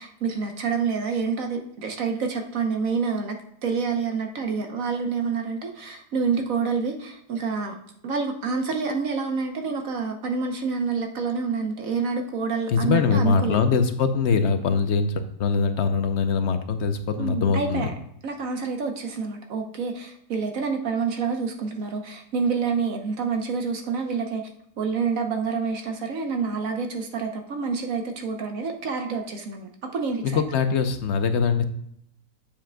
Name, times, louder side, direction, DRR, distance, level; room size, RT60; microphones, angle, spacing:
voice 1, 0.0-7.8 8.0-13.6 17.2-17.9 18.2-24.4 24.8-30.4, right 5 dB, 60° right, 4 dB, 1.2 m, -28 dB
voice 2, 12.7-17.9 30.2-31.6, left 5 dB, 60° left, 9 dB, 0.7 m, -22 dB
8.8 x 7.4 x 2.2 m, 0.73 s
omnidirectional pair, 1.7 m